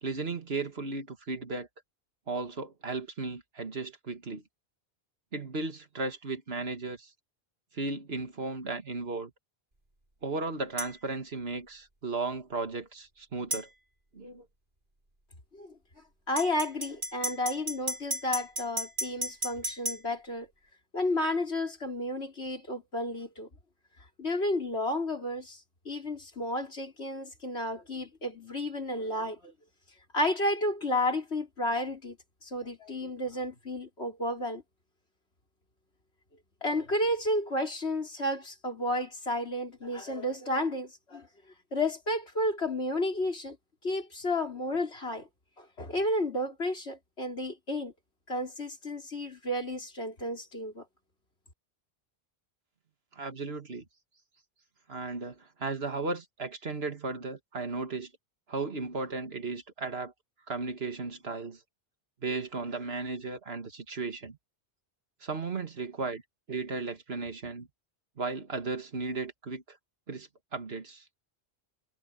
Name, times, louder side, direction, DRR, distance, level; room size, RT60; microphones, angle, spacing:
voice 1, 0.0-1.7 2.3-4.4 5.3-7.1 7.7-9.3 10.2-13.7 14.1-14.5 53.1-53.9 54.9-58.1 58.5-60.1 60.5-61.6 62.2-64.4 65.2-66.2 66.5-67.7 68.2-69.8 70.1-71.0, right 3 dB, 70° right, 2.1 m, -35 dB
sound 1, 10.8-10.9 13.5-13.7 16.4-20.0, right 1 dB, 50° right, 4.9 m, -33 dB
voice 2, 16.3-20.5 20.9-23.5 24.2-25.6 25.9-29.5 30.1-32.2 32.4-34.6 36.6-41.3 41.7-43.6 43.8-45.3 45.6-47.9 48.3-50.8, left 1 dB, 85° left, 4.5 m, -32 dB
omnidirectional pair, 1.1 m